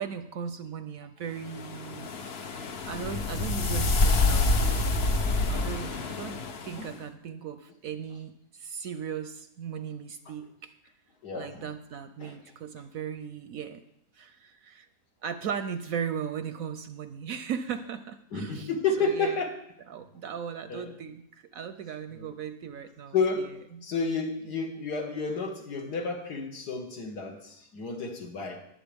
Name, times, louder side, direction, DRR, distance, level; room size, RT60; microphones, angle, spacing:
voice 1, 0.0-2.1 2.6-4.9 5.5-10.7 11.3-13.8 14.2-14.9 15.2-18.7 19.0-19.4 19.9-23.9, right 7 dB, 70° right, 11 dB, 0.9 m, -37 dB
sound 1, 1.5-6.8, left 3 dB, 50° left, 0.8 m, -27 dB
voice 2, 5.2-5.6 6.8-6.9 11.2-11.7 12.2-12.4 18.3-19.6 20.7-20.9 22.1-22.3 23.1-23.6 23.8-28.6, left 4 dB, 75° left, 2 dB, 2.1 m, -31 dB
20.5 x 7.5 x 3.5 m, 0.76 s
omnidirectional pair, 1.8 m